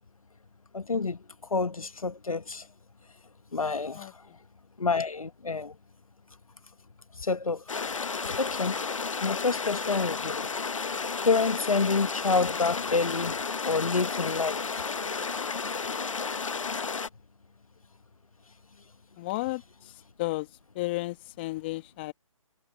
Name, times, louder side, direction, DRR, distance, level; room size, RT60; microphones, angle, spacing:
voice 1, 0.7-1.2 1.5-2.7 3.5-4.2 4.8-5.7 7.2-7.6 8.0-8.8 9.2-10.5 11.2-13.4 13.7-14.9, left 4 dB, 90° left, 1.1 m, -28 dB
sound 1, 7.7-17.1, left 5 dB, 70° left, 1.3 m, -32 dB
voice 2, 19.2-19.6 20.2-20.5 20.8-22.1, left 20 dB, 20° left, 1.9 m, -32 dB
figure-of-eight pair, 160°, 17 cm